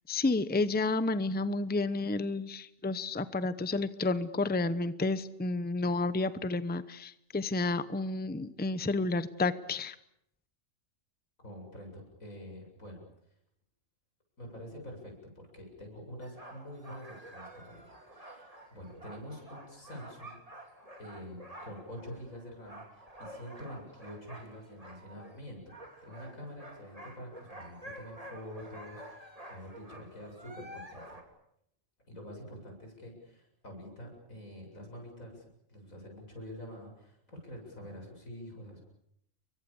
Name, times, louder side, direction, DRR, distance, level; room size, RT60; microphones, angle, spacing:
voice 1, 0.1-10.0, left 3 dB, 10° left, 14 dB, 0.8 m, -31 dB
voice 2, 11.4-13.0 14.4-20.4 21.0-31.1 32.1-38.8, equal, 90° left, 2 dB, 8.1 m, -46 dB
sound 1, 16.2-25.4 25.7-31.2, right 1 dB, 25° right, 3.4 m, -50 dB
30.0 x 23.0 x 7.2 m, 0.74 s
omnidirectional pair, 1.4 m